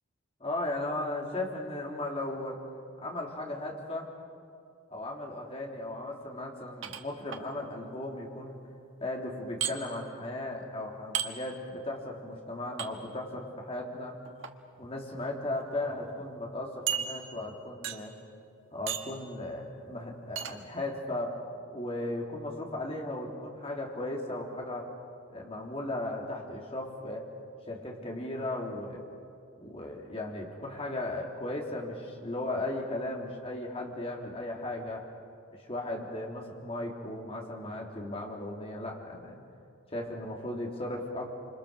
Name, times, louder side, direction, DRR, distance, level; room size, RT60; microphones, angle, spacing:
voice 1, 0.4-2.6 3.0-4.1 4.9-8.6 9.0-14.2 14.8-18.1 18.7-21.4 21.7-24.9 25.3-27.2 27.7-29.1 29.6-35.0 35.5-39.4 39.9-41.3, left 1 dB, 30° left, -1 dB, 3.4 m, -36 dB
sound 1, 6.8-7.4 9.6-9.7 11.1-11.3 12.8-12.9 14.2-14.5 15.3-15.4 15.7-15.8 16.9-17.5 17.8-18.2 18.9-19.2 20.4-20.6, right 8 dB, 70° right, 1.4 m, -34 dB
26.5 x 26.5 x 6.9 m, 2.4 s
head